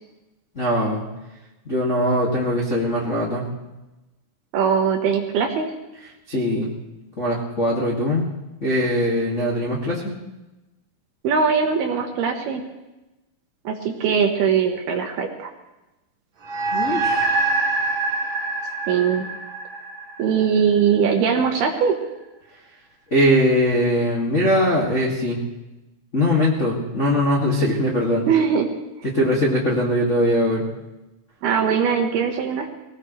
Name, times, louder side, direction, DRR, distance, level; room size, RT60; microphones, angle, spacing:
voice 1, 0.5-1.0 1.6-3.4 6.3-6.7 7.2-8.3 8.6-10.1 16.7-17.2 23.1-25.4 26.1-28.2 29.0-30.6, equal, 35° left, -5 dB, 1.1 m, -21 dB
voice 2, 4.5-5.7 11.2-12.6 13.6-15.5 18.9-19.2 20.2-22.0 28.3-28.7 31.4-32.7, right 6 dB, 70° right, 3 dB, 2.7 m, -21 dB
sound 1, 16.4-21.1, right 3 dB, 90° right, 1.1 m, -25 dB
23.5 x 17.5 x 3.2 m, 1.0 s
omnidirectional pair, 5.5 m